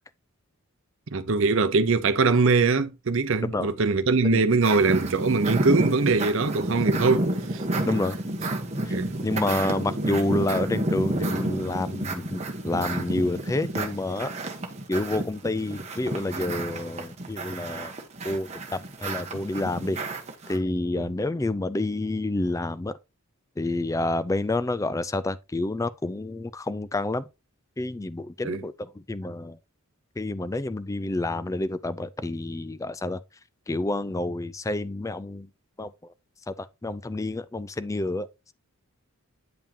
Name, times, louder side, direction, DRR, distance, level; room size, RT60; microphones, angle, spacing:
voice 1, 1.1-7.6 8.9-9.1 21.0-21.1 28.4-28.6, right 4 dB, 60° right, 0.7 m, -22 dB
sound 1, 4.6-20.6, right 1 dB, 30° right, 1.1 m, -30 dB
voice 2, 7.9-8.2 8.8-9.0 9.2-14.3 14.9-17.9 18.2-20.0 20.5-23.0 23.6-27.3 27.8-29.6 30.2-33.2 33.7-35.5 35.8-35.9 36.5-38.3, left 2 dB, 15° left, 0.3 m, -29 dB
8.8 x 5.6 x 2.8 m
head